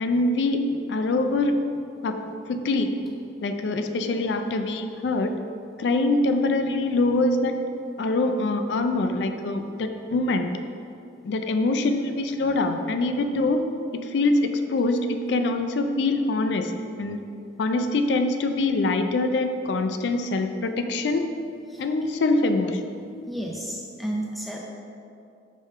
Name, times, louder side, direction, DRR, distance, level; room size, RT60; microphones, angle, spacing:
voice 1, 0.0-1.5 2.0-2.9 3.4-5.3 5.8-7.5 8.0-10.5 11.2-13.6 13.9-16.7 17.0-17.2 17.6-21.3 21.8-22.8, left 2 dB, 75° left, 7 dB, 0.3 m, -24 dB
voice 2, 21.7-22.1 23.3-24.6, right 1 dB, ahead, -2 dB, 0.5 m, -33 dB
5.1 x 3.6 x 5.3 m, 2.5 s
head